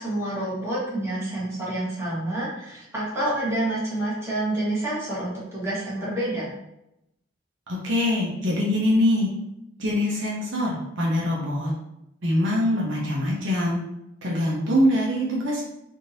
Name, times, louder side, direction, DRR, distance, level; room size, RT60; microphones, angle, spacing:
voice 1, 0.0-6.5, right 1 dB, 15° right, -9 dB, 1.3 m, -28 dB
voice 2, 7.8-9.3 9.8-10.7 11.0-11.7 12.2-13.8 14.2-15.6, left 1 dB, 65° right, -4 dB, 0.8 m, -23 dB
3.6 x 2.7 x 2.7 m, 0.84 s
head